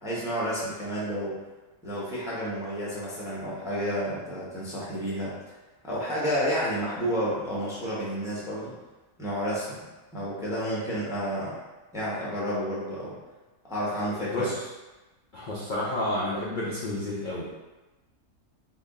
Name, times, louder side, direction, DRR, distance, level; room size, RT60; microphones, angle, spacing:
voice 1, 0.0-1.3 1.8-5.3 5.8-8.7 9.2-9.8 10.1-11.5 11.9-13.2 13.7-14.5, equal, 5° right, -7 dB, 0.6 m, -30 dB
voice 2, 14.3-14.6 15.3-17.6, left 1 dB, 55° left, -6 dB, 0.5 m, -30 dB
4.0 x 2.1 x 3.6 m, 1.1 s
omnidirectional pair, 1.5 m